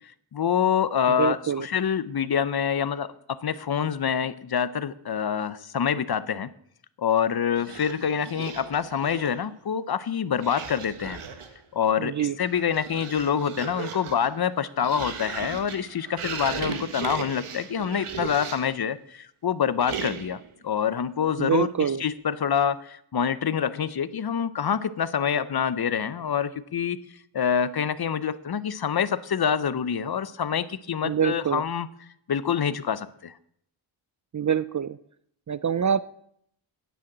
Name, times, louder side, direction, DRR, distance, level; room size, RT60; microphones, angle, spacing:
voice 1, 0.3-6.5 7.0-11.2 11.7-21.7 22.0-27.0 27.3-31.9 32.3-33.3, left 8 dB, 50° left, 15 dB, 0.7 m, -26 dB
voice 2, 1.1-1.7 12.0-12.4 21.4-22.0 31.0-31.6 34.3-35.0 35.5-36.0, right 8 dB, 40° right, 16 dB, 0.4 m, -25 dB
sound 1, 7.6-9.5 10.4-11.6 12.3-18.8 19.8-20.5, right 7 dB, 80° right, 1.4 m, -37 dB
10.0 x 9.4 x 8.6 m, 0.70 s
wide cardioid pair, 125°, 49 cm